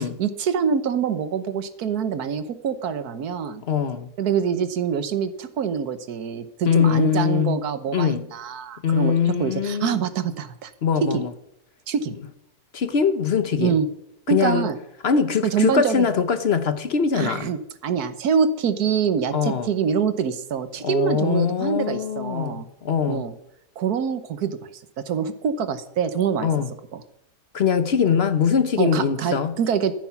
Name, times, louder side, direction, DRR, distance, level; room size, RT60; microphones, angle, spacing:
voice 1, 0.0-3.6 4.2-9.1 9.4-10.7 11.0-11.2 11.9-12.2 13.6-13.9 14.3-14.8 15.4-16.1 17.1-22.7 23.1-23.3 23.8-24.6 25.0-26.5 26.9-27.0 28.8-29.9, right 7 dB, 75° right, 1.5 m, -25 dB
voice 2, 3.6-4.1 6.6-7.6 7.9-8.2 8.8-10.0 10.8-11.3 12.7-13.8 14.3-14.7 15.0-17.5 19.3-19.7 20.8-23.3 26.4-26.7 27.5-29.6, left 6 dB, 50° left, 0.9 m, -22 dB
14.5 x 9.5 x 5.9 m
omnidirectional pair, 1.7 m